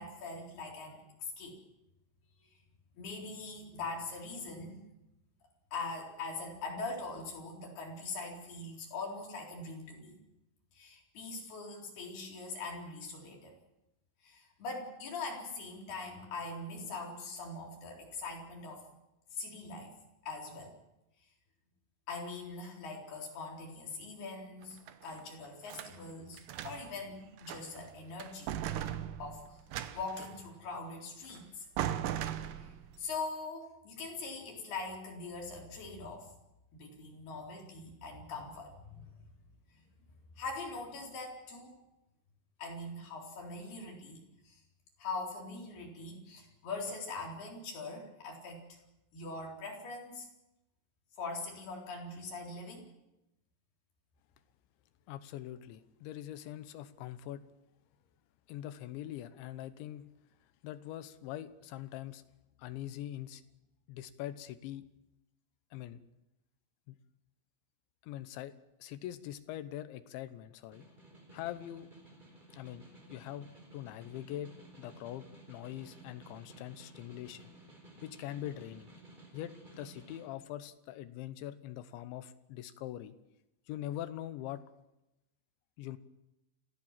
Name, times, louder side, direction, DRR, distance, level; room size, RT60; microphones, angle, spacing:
voice 1, 0.0-1.6 3.0-4.8 5.7-10.2 10.7-13.6 14.2-18.8 19.3-19.9 20.2-20.7 22.1-28.6 29.2-29.6 29.9-31.7 32.6-32.7 33.0-36.3 36.7-39.1 39.7-39.8 40.4-41.7 42.6-44.6 45.0-48.6 49.1-50.3 51.2-52.9, left 3 dB, 55° left, 0 dB, 5.9 m, -42 dB
sound 1, 24.6-26.0 26.4-27.0 27.4-27.9 28.2-30.4 31.3-31.4 31.8-33.0, right 11 dB, 75° right, 2.9 m, -38 dB
voice 2, 55.1-57.5 58.5-60.1 60.6-62.2 62.6-63.4 63.9-64.9 65.7-66.0 66.9-67.0 68.0-70.8 71.3-71.9 72.5-72.8 73.1-77.5 78.0-78.9 79.3-83.1 83.7-84.7 85.8-86.0, left 12 dB, 80° left, 12 dB, 3.3 m, -43 dB
Snare drum, 70.5-80.3, right 2 dB, 10° right, 3.3 m, -55 dB
28.0 x 15.5 x 7.5 m, 0.93 s
omnidirectional pair, 5.4 m